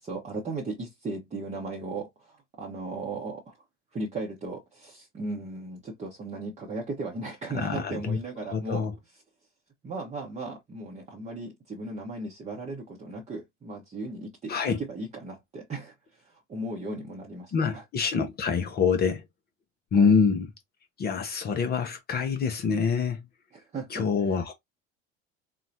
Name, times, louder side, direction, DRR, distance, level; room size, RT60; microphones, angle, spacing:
voice 1, 0.0-3.6 3.9-8.9 9.8-17.8 19.9-20.2 23.5-24.1, right 2 dB, 20° right, 0.8 m, -36 dB
voice 2, 7.5-8.2 8.5-8.9 14.5-14.8 17.5-19.2 19.9-20.5 21.0-23.2 23.9-24.5, left 5 dB, 25° left, 0.6 m, -25 dB
3.8 x 2.1 x 2.6 m
figure-of-eight pair, 70°, 36 cm